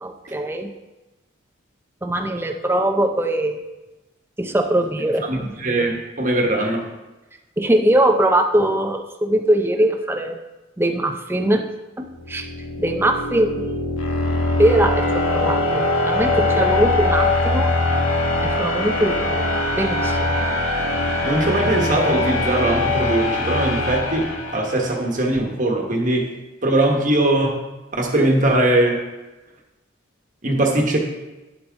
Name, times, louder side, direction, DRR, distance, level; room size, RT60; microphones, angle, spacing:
voice 1, 0.0-0.7 2.0-3.6 4.4-5.3 7.6-10.4 10.8-11.7 12.0-12.5 12.8-13.7 14.6-17.7 18.4-19.5 19.7-20.4, right 1 dB, 10° right, 5 dB, 0.6 m, -21 dB
voice 2, 5.3-6.8 21.2-26.3 26.6-27.6 27.9-29.0 30.4-31.0, right 1 dB, 40° right, 1 dB, 1.3 m, -20 dB
sound 1, 12.2-25.1, left 2 dB, 85° left, 1.4 m, -22 dB
10.5 x 7.7 x 3.6 m, 1.1 s
head